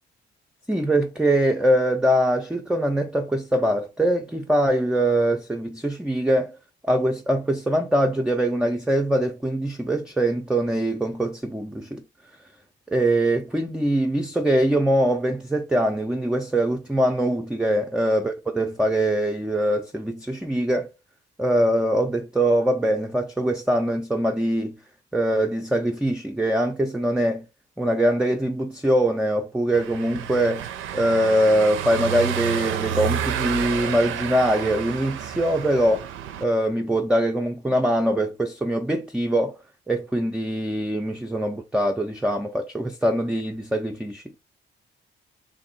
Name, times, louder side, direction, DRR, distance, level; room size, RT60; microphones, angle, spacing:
voice 1, 0.7-6.6 6.9-12.0 12.9-20.9 21.4-24.8 25.1-27.4 27.8-30.6 30.9-36.1 36.4-39.5 39.9-44.2, right 1 dB, 5° right, 0.4 m, -23 dB
Car passing by / Engine, 29.7-36.4, right 9 dB, 90° right, 0.5 m, -30 dB
2.9 x 2.6 x 4.1 m
cardioid pair, 90°, 20 cm